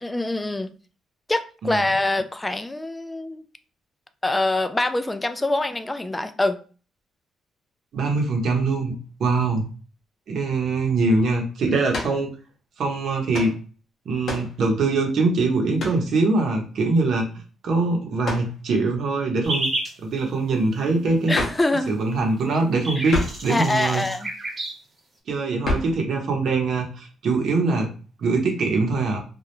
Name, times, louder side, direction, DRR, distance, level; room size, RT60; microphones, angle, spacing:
voice 1, 0.0-0.7 1.3-3.4 4.2-6.6 21.3-22.0 23.0-23.1 23.5-24.3, left 2 dB, 15° left, 0.3 m, -24 dB
voice 2, 7.9-9.7 10.3-12.3 12.8-13.5 14.1-17.3 17.6-19.7 20.0-21.3 21.9-24.0 25.3-27.9 28.2-29.2, right 3 dB, 65° right, 0.8 m, -23 dB
sound 1, 11.9-12.2 13.3-13.6 14.2-14.6 15.8-16.1 18.2-18.5 21.3-21.7 23.1-23.5 25.6-26.0, left 2 dB, 60° left, 0.7 m, -28 dB
sound 2, 19.4-19.9 22.1-22.2 22.4-24.7, right 1 dB, 35° right, 0.8 m, -30 dB
2.3 x 2.0 x 3.0 m
cardioid pair, 90°, 0 cm